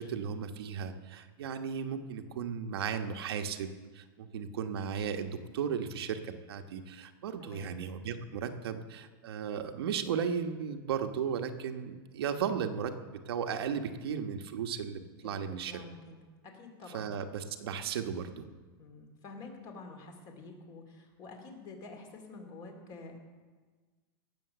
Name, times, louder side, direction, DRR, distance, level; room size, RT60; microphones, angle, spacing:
voice 1, 0.0-12.9 13.3-15.8 16.9-18.5, right 7 dB, 85° right, 6 dB, 1.2 m, -35 dB
voice 2, 7.4-7.7 15.2-15.4 15.7-16.2 16.4-17.1 18.8-23.2, left 3 dB, 30° left, 3 dB, 2.4 m, -48 dB
18.0 x 7.1 x 6.8 m, 1.4 s
supercardioid pair, 160°, 13 cm